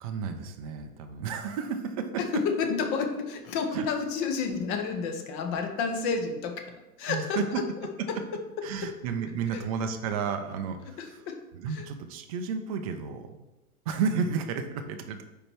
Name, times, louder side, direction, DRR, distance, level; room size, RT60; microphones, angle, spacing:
voice 1, 0.0-2.1 3.7-3.9 7.1-7.6 8.6-11.2 11.5-13.5 13.9-15.2, right 6 dB, 25° right, 6 dB, 0.4 m, -32 dB
voice 2, 2.3-6.7 7.0-7.6 8.1-8.2 8.8-8.9 9.5-9.6 11.0-11.4 11.7-11.8, left 5 dB, 30° left, 5 dB, 0.7 m, -30 dB
5.0 x 4.4 x 4.5 m, 1.0 s
hypercardioid pair, 110°, 45 cm